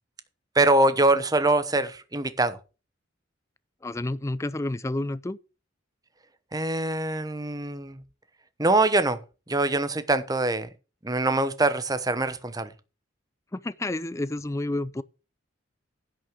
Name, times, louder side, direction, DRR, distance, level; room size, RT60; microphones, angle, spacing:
voice 1, 0.5-2.6 6.5-8.0 8.6-9.2 9.5-10.7 11.0-12.7, right 2 dB, 20° right, 1.0 m, -23 dB
voice 2, 3.8-5.4 13.5-15.0, left 2 dB, 15° left, 0.4 m, -30 dB
11.0 x 6.4 x 6.5 m
head